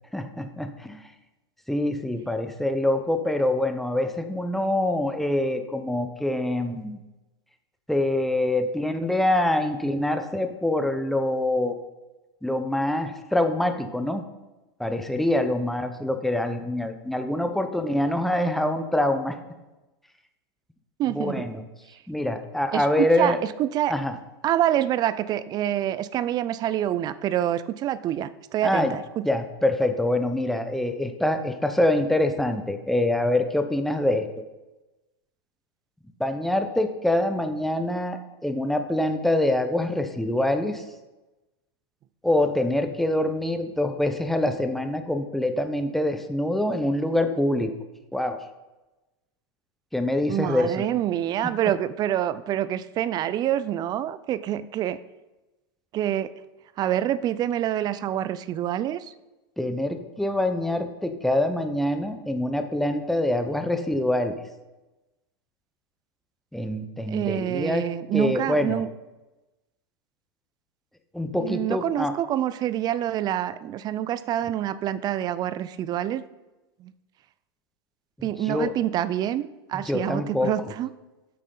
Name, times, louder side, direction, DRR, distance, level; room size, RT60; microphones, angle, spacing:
voice 1, 0.1-1.1 1.7-7.0 7.9-11.7 12.4-14.2 14.8-19.4 21.1-21.6 22.1-23.4 23.9-24.2 28.6-29.0 29.2-34.3 36.2-40.8 42.2-47.7 48.1-48.4 49.9-50.8 51.4-51.5 59.6-64.4 66.5-67.8 68.1-68.8 71.1-72.1 78.2-78.7 79.7-80.5, left 1 dB, ahead, 7 dB, 0.7 m, -25 dB
voice 2, 21.0-21.5 22.7-24.0 24.4-29.3 50.3-55.0 55.9-56.3 56.8-59.1 67.1-68.9 71.4-76.2 76.8-76.9 78.2-80.9, right 11 dB, 30° right, 16 dB, 0.4 m, -26 dB
8.4 x 6.3 x 3.9 m, 1.1 s
hypercardioid pair, 115°, 13 cm